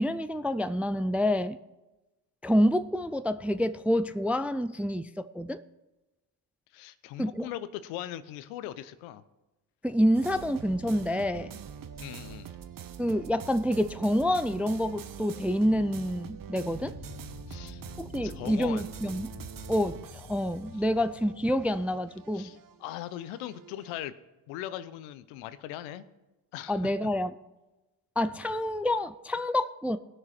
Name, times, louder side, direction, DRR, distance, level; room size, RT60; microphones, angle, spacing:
voice 1, 0.0-1.6 2.4-5.6 7.2-7.5 9.8-11.5 13.0-16.9 18.0-19.3 19.7-22.5 26.7-27.3 28.2-30.0, equal, 5° right, 12 dB, 0.3 m, -27 dB
voice 2, 6.7-9.2 12.0-12.5 17.5-17.8 18.2-18.9 22.3-24.1 24.5-26.0 26.5-26.9, left 13 dB, 75° left, 14 dB, 0.8 m, -39 dB
sound 1, 10.1-24.0, right 8 dB, 40° right, 0.9 m, -45 dB
sound 2, 16.7-22.5, left 3 dB, 45° left, 1.5 m, -48 dB
18.0 x 6.6 x 4.3 m, 1.1 s
hypercardioid pair, 55°, 49 cm